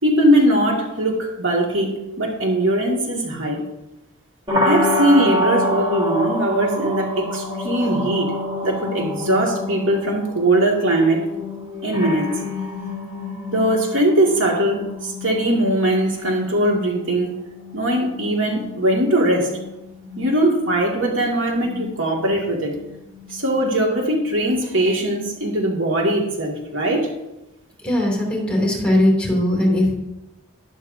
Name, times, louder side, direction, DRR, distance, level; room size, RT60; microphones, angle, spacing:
voice 1, 0.0-3.6 4.6-8.3 8.6-11.3 11.8-12.3 13.5-17.3 17.7-19.5 20.2-22.8 23.3-27.1, right 1 dB, 60° right, -1 dB, 2.2 m, -20 dB
sound 1, 4.5-24.3, left 1 dB, 20° right, 1.5 m, -28 dB
voice 2, 27.8-29.9, left 1 dB, 5° left, -2 dB, 2.8 m, -19 dB
12.5 x 11.5 x 2.7 m, 0.96 s
head